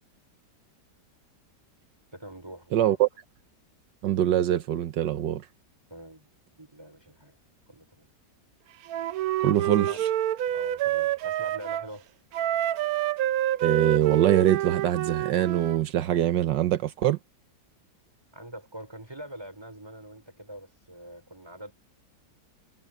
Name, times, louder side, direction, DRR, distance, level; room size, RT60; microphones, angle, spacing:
voice 1, 2.1-3.0 5.9-6.3 6.6-7.4 7.7-8.1 9.6-10.0 10.5-12.1 18.3-21.7, right 1 dB, 15° right, 5.9 m, -44 dB
voice 2, 2.7-3.1 4.0-5.5 9.4-10.1 13.6-17.2, right 12 dB, 85° right, 1.5 m, -23 dB
Wind instrument woodwind instrument, 8.9-11.9 12.3-15.8, right 12 dB, 65° right, 1.0 m, -28 dB
omnidirectional pair, 1.9 m